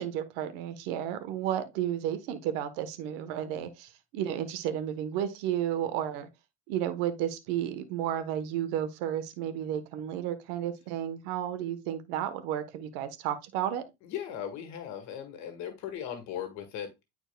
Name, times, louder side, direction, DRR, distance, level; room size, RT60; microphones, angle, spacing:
voice 1, 0.0-6.3 6.7-13.8, right 10 dB, 80° right, 1.1 m, -32 dB
voice 2, 14.0-17.0, left 9 dB, 65° left, 1.7 m, -38 dB
10.5 x 4.5 x 2.2 m
supercardioid pair, 100°, 30 cm